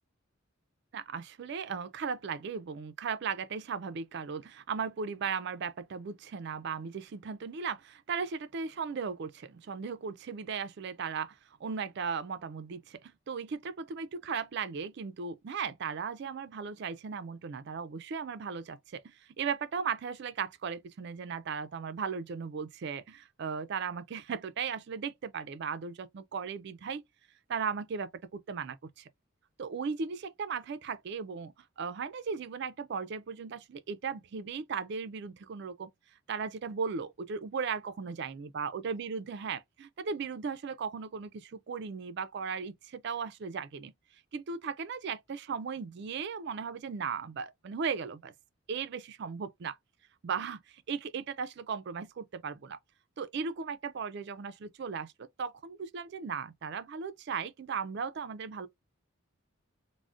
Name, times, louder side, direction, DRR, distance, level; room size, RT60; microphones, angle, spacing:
voice 1, 0.9-27.0 27.5-29.1 29.6-35.9 36.3-43.9 44.3-48.3 48.7-49.8 50.2-52.8 53.2-58.7, right 6 dB, 50° right, 0.3 m, -37 dB
3.6 x 2.0 x 2.4 m
head